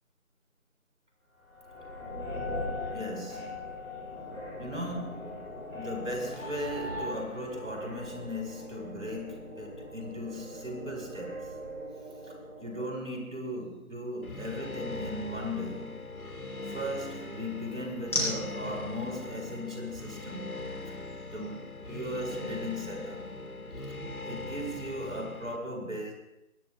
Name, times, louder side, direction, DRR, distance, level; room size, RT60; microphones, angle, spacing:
sound 1, 1.5-12.8, left 1 dB, 10° right, 7.5 m, -40 dB
voice 1, 2.6-3.7 4.5-11.5 12.2-16.1 16.6-20.5 20.9-21.0 21.3-23.3 24.2-26.1, equal, 65° right, 4.5 m, -38 dB
sound 2, 8.3-22.5, left 1 dB, 10° left, 4.1 m, -44 dB
sound 3, 14.2-25.6, left 2 dB, 85° left, 1.8 m, -40 dB
21.5 x 20.5 x 2.3 m
figure-of-eight pair, 175°, 42 cm